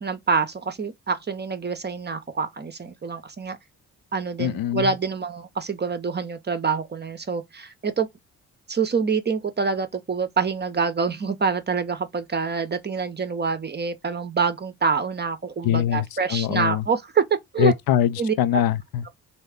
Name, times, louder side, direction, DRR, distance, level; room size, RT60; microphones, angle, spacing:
voice 1, 0.0-3.6 4.1-8.1 8.7-17.7 18.2-18.3, right 5 dB, 25° right, 0.7 m, -26 dB
voice 2, 4.4-4.9 15.6-16.9 17.6-19.0, left 10 dB, 55° left, 0.5 m, -23 dB
3.1 x 2.7 x 3.5 m
hypercardioid pair, 40°, 43 cm